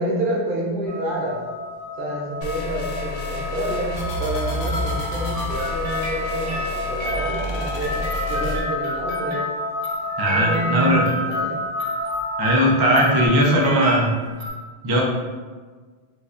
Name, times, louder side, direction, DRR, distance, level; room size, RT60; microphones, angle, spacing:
voice 1, 0.0-1.4 2.0-8.0 8.3-9.5 10.3-11.6, right 1 dB, 55° right, -4 dB, 0.9 m, -28 dB
sound 1, 0.9-13.3, left 2 dB, 65° left, 1.2 m, -30 dB
sound 2, 2.4-8.6, left 1 dB, 85° left, 0.9 m, -30 dB
sound 3, 4.3-14.5, equal, 80° right, 1.4 m, -34 dB
voice 2, 10.2-11.1 12.4-14.1 14.8-15.0, equal, 35° right, -2 dB, 0.4 m, -18 dB
4.3 x 2.4 x 2.4 m, 1.4 s
omnidirectional pair, 1.1 m